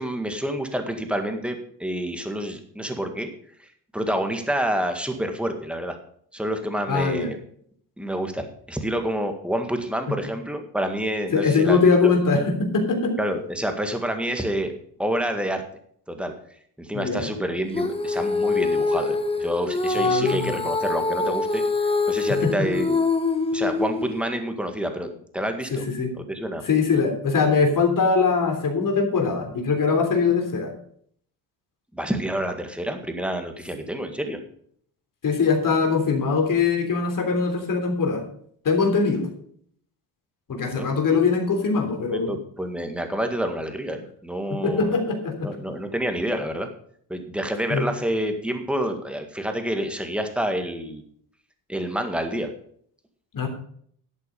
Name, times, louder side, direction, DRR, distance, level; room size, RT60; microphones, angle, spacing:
voice 1, 0.0-3.3 3.6-6.0 6.3-7.4 8.0-12.1 13.2-14.7 15.0-15.6 16.1-16.3 16.8-21.6 22.1-23.0 23.5-25.8 26.1-26.6 31.9-34.4 40.5-40.9 42.1-45.0 45.4-46.7 47.1-51.0 51.7-52.5, right 1 dB, 5° right, 5 dB, 1.9 m, -28 dB
voice 2, 6.9-7.3 10.1-10.2 11.3-13.1 16.9-17.2 20.0-20.6 22.4-22.7 25.7-26.1 26.6-30.7 35.2-38.2 38.6-39.3 40.5-42.3 44.5-45.5 47.7-47.9 53.3-53.5, left 4 dB, 50° left, 4 dB, 3.4 m, -22 dB
Female singing, 17.7-24.2, left 3 dB, 15° left, 1.3 m, -24 dB
11.5 x 8.3 x 5.4 m, 0.62 s
cardioid pair, 105°, 42 cm